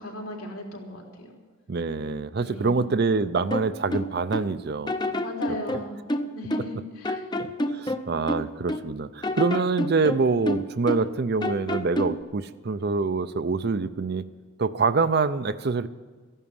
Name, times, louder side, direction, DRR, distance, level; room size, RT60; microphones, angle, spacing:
voice 1, 0.0-1.3 2.4-2.8 5.2-6.0 6.3-7.3, left 1 dB, 80° left, -1 dB, 3.7 m, -37 dB
voice 2, 1.7-4.9 7.4-14.3 14.6-15.9, right 4 dB, 50° right, 12 dB, 0.5 m, -25 dB
sound 1, 3.5-4.5 4.9-6.8 7.0-8.9 9.2-11.1 11.4-12.2, left 1 dB, 20° left, 0.6 m, -29 dB
15.0 x 11.0 x 7.1 m, 1.5 s
head